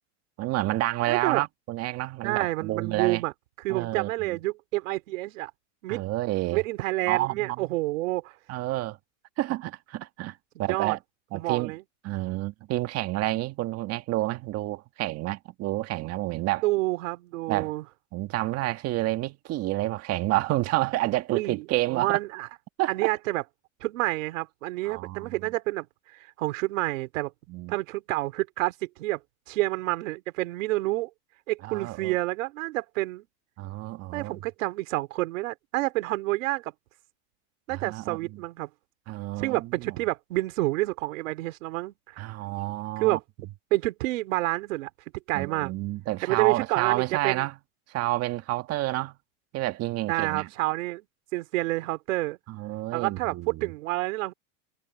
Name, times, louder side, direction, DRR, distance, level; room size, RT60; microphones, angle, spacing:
voice 1, 0.4-3.2 3.7-4.4 5.9-6.6 7.1-7.7 8.5-9.0 9.4-11.0 11.3-11.7 12.0-16.6 17.5-17.7 18.1-22.1 22.8-23.1 24.8-25.3 27.5-27.8 31.6-32.2 33.6-34.4 37.7-38.2 39.1-40.0 42.2-43.2 45.3-47.5 47.9-49.2 49.5-50.5 52.5-53.7, right 17 dB, 40° right, 1.7 m, -29 dB
voice 2, 1.1-1.4 2.2-3.3 3.6-5.5 5.8-6.0 6.5-8.4 10.6-11.0 11.3-11.8 16.6-17.8 21.3-22.5 22.9-23.4 23.8-25.9 26.1-27.3 27.7-29.2 29.5-31.1 31.5-33.3 34.1-36.7 37.7-38.7 39.4-42.2 43.0-43.2 43.7-44.9 45.3-45.7 46.2-47.5 50.1-51.1 51.3-52.4 52.9-54.3, right 19 dB, 75° right, 3.4 m, -28 dB
supercardioid pair, 145°, 39 cm